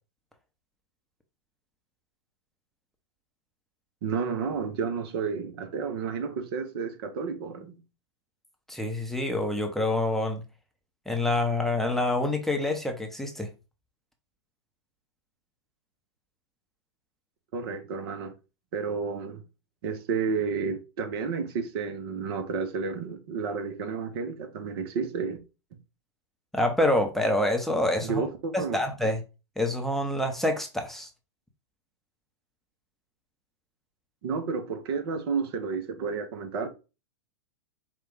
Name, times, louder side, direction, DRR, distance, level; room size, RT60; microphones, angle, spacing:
voice 1, 4.0-7.8 17.5-18.3 18.7-19.4 19.8-25.4 28.0-28.8 34.2-36.7, right 5 dB, 60° right, 0.9 m, -31 dB
voice 2, 8.7-10.4 11.1-13.5 26.5-28.2 28.5-29.2 29.6-31.1, left 1 dB, ahead, 0.7 m, -26 dB
4.9 x 2.3 x 3.5 m
hypercardioid pair, 105°, 15 cm